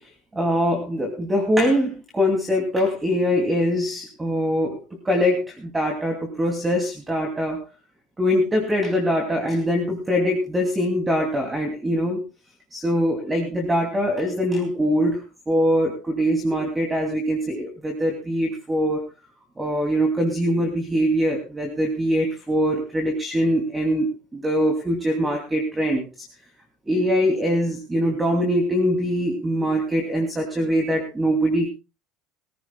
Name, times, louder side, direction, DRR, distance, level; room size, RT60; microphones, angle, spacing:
voice 1, 0.3-4.8 5.0-7.6 8.2-12.2 12.7-15.2 15.5-19.0 19.6-26.0 26.9-31.7, equal, 15° right, 3 dB, 2.7 m, -23 dB
22.5 x 15.0 x 2.3 m, 0.29 s
cardioid pair, 140°, 0 cm